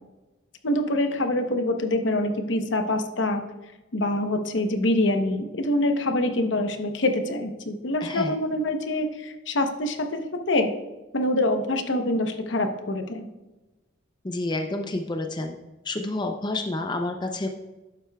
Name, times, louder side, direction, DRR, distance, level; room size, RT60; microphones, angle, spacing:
voice 1, 0.6-3.4 3.9-10.7 11.1-13.3, left 1 dB, 65° left, 6 dB, 0.8 m, -25 dB
voice 2, 8.0-8.3 14.2-15.6 15.8-17.5, left 2 dB, 20° left, 4 dB, 0.5 m, -29 dB
11.0 x 8.0 x 2.3 m, 1.1 s
head